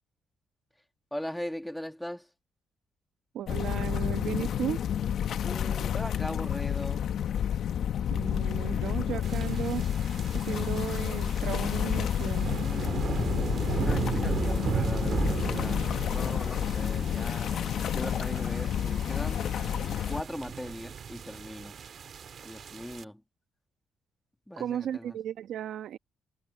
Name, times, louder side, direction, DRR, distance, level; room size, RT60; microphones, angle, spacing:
voice 1, 1.1-2.3 5.4-7.0 12.6-13.2 13.8-17.6 17.9-19.5 20.1-21.7 22.4-23.2 24.5-25.1, left 1 dB, 5° left, 1.8 m, -39 dB
voice 2, 3.3-4.8 8.1-9.8 10.3-12.5 24.6-26.0, right 10 dB, 75° right, 1.1 m, -35 dB
sound 1, 3.5-20.2, left 9 dB, 65° left, 1.1 m, -30 dB
sound 2, 9.2-23.0, right 7 dB, 55° right, 1.8 m, -36 dB
cardioid pair, 90°, 0 cm